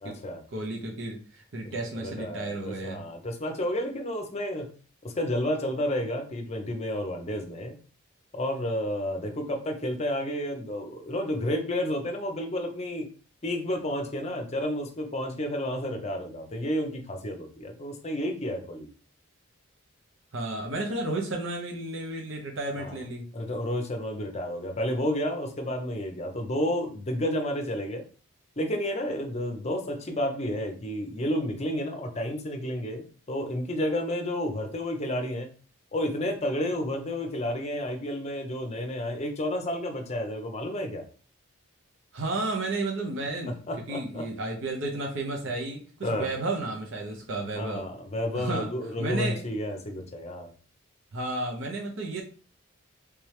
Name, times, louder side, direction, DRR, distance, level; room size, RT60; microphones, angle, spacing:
voice 1, 0.0-0.4 1.6-4.7 5.0-7.8 8.3-13.1 13.4-18.9 22.8-22.9 23.3-28.0 28.6-35.6 35.9-41.0 43.5-44.3 46.0-46.3 47.6-50.5, left 1 dB, 30° left, 4 dB, 0.6 m, -31 dB
voice 2, 0.5-3.1 20.3-23.3 42.1-43.5 43.9-47.9 48.3-48.7 49.0-49.4 51.1-52.2, right 2 dB, 60° right, 2 dB, 0.7 m, -32 dB
3.3 x 3.2 x 3.2 m, 0.39 s
head